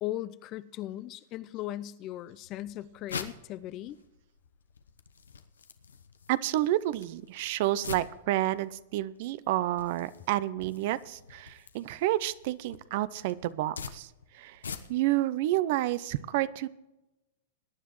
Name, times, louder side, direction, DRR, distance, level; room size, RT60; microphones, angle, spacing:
voice 1, 0.0-4.0, left 14 dB, 40° left, 0.6 m, -38 dB
sound 1, 2.4-15.2, left 6 dB, 85° left, 0.9 m, -46 dB
voice 2, 6.3-14.6 14.9-16.7, right 15 dB, 55° right, 0.6 m, -30 dB
21.0 x 10.0 x 3.1 m
hypercardioid pair, 110°, 0 cm